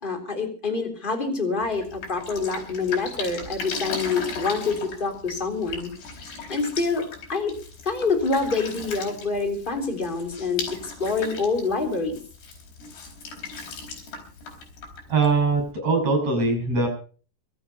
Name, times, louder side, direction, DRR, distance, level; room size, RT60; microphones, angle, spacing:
voice 1, 0.0-5.9 6.5-7.0 7.3-7.5 7.8-12.2, left 4 dB, 15° left, 5 dB, 3.1 m, -26 dB
Drip, 1.6-15.7, left 4 dB, 80° left, 6.5 m, -37 dB
voice 2, 15.1-16.9, right 3 dB, 40° right, 4 dB, 7.1 m, -22 dB
24.0 x 9.3 x 5.5 m, 0.41 s
omnidirectional pair, 4.6 m